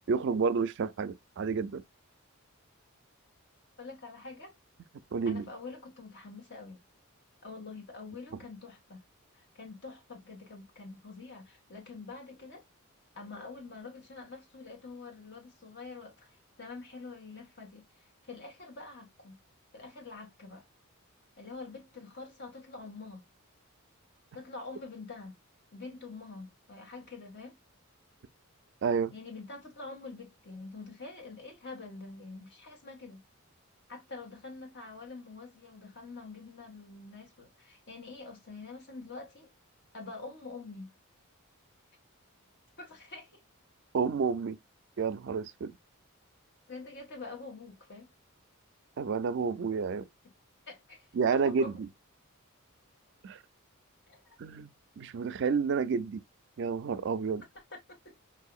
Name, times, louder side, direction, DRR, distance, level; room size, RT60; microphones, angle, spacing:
voice 1, 0.1-1.8 5.1-5.5 28.8-29.1 43.9-44.6 45.0-45.7 49.0-50.1 51.1-51.9 53.2-53.4 54.4-54.7 55.0-56.2 56.6-57.4, right 5 dB, 55° right, 0.4 m, -30 dB
voice 2, 3.8-4.5 5.2-6.8 7.4-9.0 9.3-12.6 13.1-17.8 18.2-19.4 19.7-20.6 21.4-23.3 24.3-25.4 25.7-27.6 29.1-33.2 33.9-39.5 39.9-40.9 42.8-43.4 46.7-48.1 50.7-51.8 54.1-54.4 57.7-58.1, left 3 dB, 55° left, 1.5 m, -46 dB
4.8 x 2.7 x 2.3 m
head